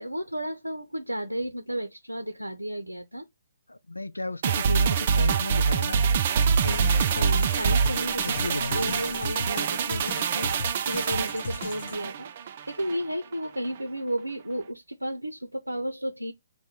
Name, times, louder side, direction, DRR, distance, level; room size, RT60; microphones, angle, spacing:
voice 1, 0.0-3.2 6.6-16.3, equal, 90° right, 0.6 m, -33 dB
voice 2, 3.7-6.1 6.4-7.1 8.2-9.0, left 2 dB, 85° left, 0.5 m, -34 dB
sound 1, 4.4-13.0 13.3-13.4, right 6 dB, 40° right, 0.4 m, -25 dB
sound 2, 6.5-12.0, left 2 dB, 50° left, 0.8 m, -36 dB
3.5 x 2.2 x 4.3 m
figure-of-eight pair, 130°, 0 cm